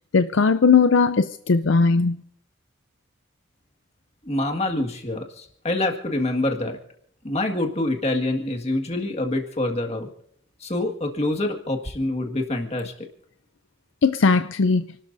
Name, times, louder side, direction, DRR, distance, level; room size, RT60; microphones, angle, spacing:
voice 1, 0.1-2.2 14.0-14.8, left 4 dB, 65° left, 10 dB, 0.5 m, -18 dB
voice 2, 4.2-6.8 7.2-10.1 10.6-12.9, left 1 dB, 30° left, 3 dB, 1.9 m, -26 dB
29.5 x 12.5 x 2.7 m, 0.66 s
head